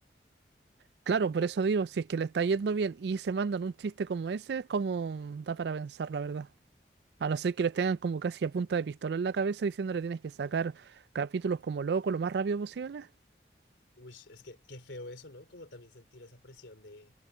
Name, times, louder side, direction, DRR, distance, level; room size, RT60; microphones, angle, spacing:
voice 1, 1.1-6.5 7.2-10.9 11.1-13.1, right 5 dB, 65° right, 0.4 m, -31 dB
voice 2, 13.9-17.1, left 2 dB, 85° left, 3.2 m, -48 dB
head